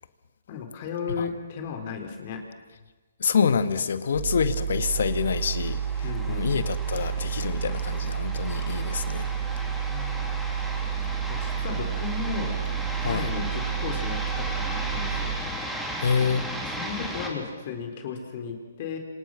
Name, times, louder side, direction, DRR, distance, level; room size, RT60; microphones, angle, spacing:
voice 1, 0.5-2.4 6.0-6.6 9.5-10.4 11.3-12.6 13.0-15.3 16.8-19.0, left 6 dB, 40° left, 5 dB, 4.1 m, -35 dB
voice 2, 3.2-5.8 6.3-9.3 13.0-13.3 16.0-16.5, left 6 dB, 70° left, 11 dB, 1.9 m, -26 dB
sound 1, 4.1-15.4, right 8 dB, 45° right, 7.3 m, -30 dB
sound 2, 4.7-17.3, equal, ahead, 3.4 m, -36 dB
27.5 x 26.5 x 6.6 m, 1.3 s
hypercardioid pair, 145°, 0 cm